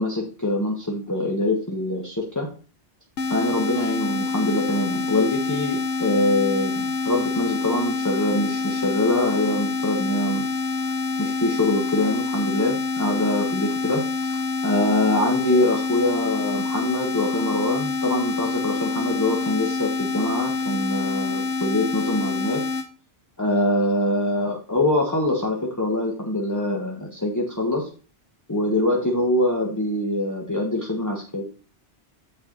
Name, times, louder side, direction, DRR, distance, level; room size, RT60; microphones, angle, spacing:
voice 1, 0.0-2.5 3.3-10.5 11.2-22.6 23.4-27.9 28.5-31.4, left 1 dB, 15° left, -2 dB, 1.4 m, -24 dB
sound 1, 3.2-22.9, left 3 dB, 85° left, 1.2 m, -27 dB
8.2 x 5.9 x 3.9 m, 0.38 s
omnidirectional pair, 1.1 m